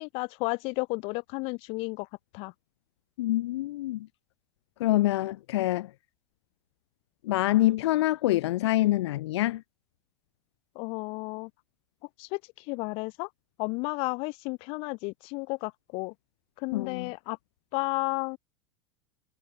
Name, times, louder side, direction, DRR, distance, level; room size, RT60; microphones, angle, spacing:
voice 1, 0.0-2.1 2.3-2.5 10.7-11.5 12.2-13.3 13.6-16.1 16.6-17.4 17.7-18.4, left 29 dB, 40° left, 4.7 m, -32 dB
voice 2, 3.2-4.1 4.8-5.9 7.2-9.6 16.7-17.1, left 16 dB, 80° left, 1.4 m, -26 dB
supercardioid pair, 170°, 14 cm